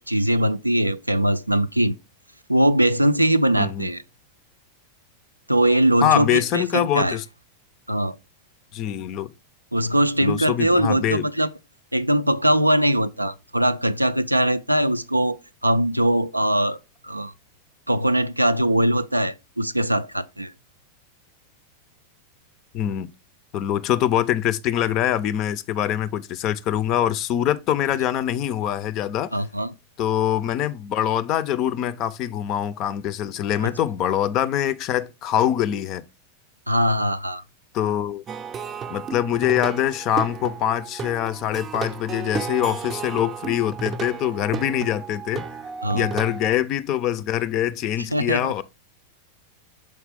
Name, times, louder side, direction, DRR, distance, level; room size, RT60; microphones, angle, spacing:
voice 1, 0.0-2.0 2.5-4.0 5.5-7.2 7.9-8.2 9.7-11.5 11.9-16.8 17.0-17.3 17.9-20.5 29.3-29.7 33.6-33.7 36.7-37.4 45.8-46.1 48.1-48.5, right 1 dB, 85° right, 0.3 m, -21 dB
voice 2, 3.6-3.9 6.0-7.2 8.7-9.3 10.2-11.3 22.7-23.1 23.5-29.3 30.0-36.0 37.7-38.2 38.9-45.5 45.9-48.6, left 11 dB, 40° left, 0.4 m, -24 dB
Plucked string instrument, 38.3-46.5, right 6 dB, 25° right, 0.5 m, -33 dB
6.5 x 4.5 x 3.3 m
figure-of-eight pair, 90°, 0 cm